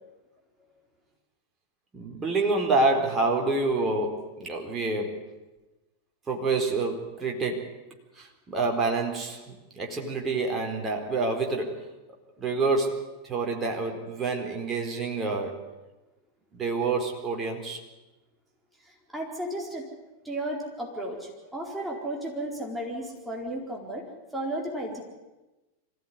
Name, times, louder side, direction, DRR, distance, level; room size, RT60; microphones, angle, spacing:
voice 1, 1.9-5.3 6.3-7.7 8.2-11.8 12.4-15.6 16.5-17.8, right 3 dB, 20° right, 1 dB, 4.3 m, -27 dB
voice 2, 18.8-19.9 20.2-24.1 24.3-25.0, right 1 dB, 5° right, -2 dB, 4.4 m, -34 dB
25.0 x 16.0 x 9.8 m, 1.1 s
figure-of-eight pair, 90°, 0 cm